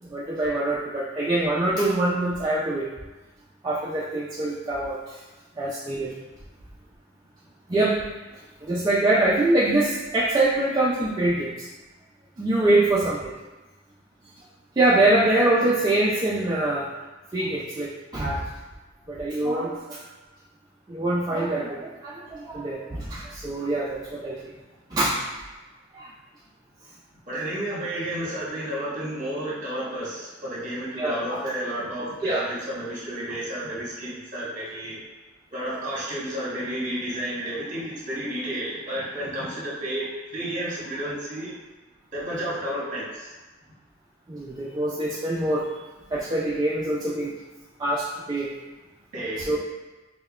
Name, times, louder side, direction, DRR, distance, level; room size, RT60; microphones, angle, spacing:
voice 1, 0.0-2.9 3.6-5.2 5.6-6.1 7.7-8.0 8.6-11.7 12.4-13.3 14.8-16.9 17.3-18.5 19.1-20.1 20.9-24.5 24.9-25.2 25.9-26.1 31.0-31.4 32.2-32.4 44.3-45.8 46.1-47.3 47.8-48.5 49.5-49.6, right 2 dB, 20° right, -6 dB, 0.3 m, -24 dB
voice 2, 27.3-35.0 35.5-41.5 42.1-43.3 49.1-49.6, right 1 dB, 40° right, -7 dB, 1.1 m, -31 dB
5.3 x 2.1 x 2.3 m, 1.2 s
head